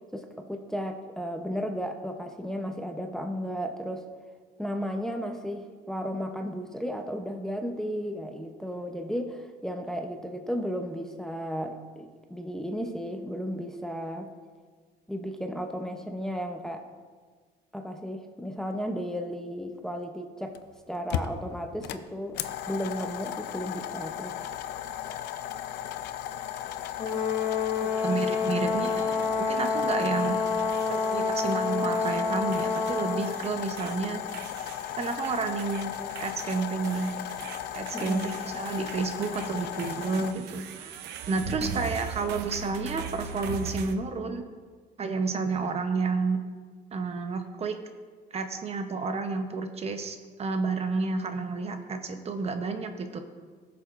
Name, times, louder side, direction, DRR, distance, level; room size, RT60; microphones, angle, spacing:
voice 1, 0.1-4.1 4.6-14.3 15.1-16.8 17.7-20.6 20.9-22.4 22.7-24.4 37.9-38.4 41.6-41.8, equal, 5° left, 4 dB, 0.7 m, -34 dB
sound 1, 20.6-20.7 21.1-40.3, left 11 dB, 75° left, 0.5 m, -36 dB
Brass instrument, 27.0-33.4, left 5 dB, 45° left, 1.4 m, -28 dB
sound 2, 27.1-28.5 28.8-29.7 30.0-32.2 32.5-44.0, right 8 dB, 80° right, 0.6 m, -41 dB
voice 2, 27.8-30.4 30.9-34.2 35.0-35.9 36.2-37.2 37.7-40.9 41.3-44.4 45.0-46.4 46.9-47.7 48.3-53.2, right 4 dB, 40° right, 7 dB, 0.8 m, -30 dB
17.0 x 6.9 x 2.5 m, 1.5 s
cardioid pair, 110°, 17 cm